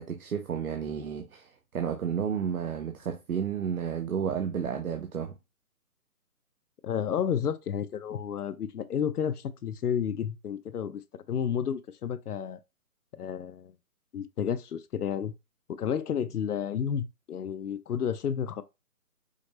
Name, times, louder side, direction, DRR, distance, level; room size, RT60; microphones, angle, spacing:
voice 1, 0.0-5.3, right 7 dB, 70° right, 0.7 m, -32 dB
voice 2, 6.8-11.0 11.3-12.6 13.1-13.7 14.1-15.3 15.7-18.6, left 8 dB, 80° left, 0.6 m, -31 dB
5.0 x 2.0 x 2.8 m
hypercardioid pair, 175°, 45 cm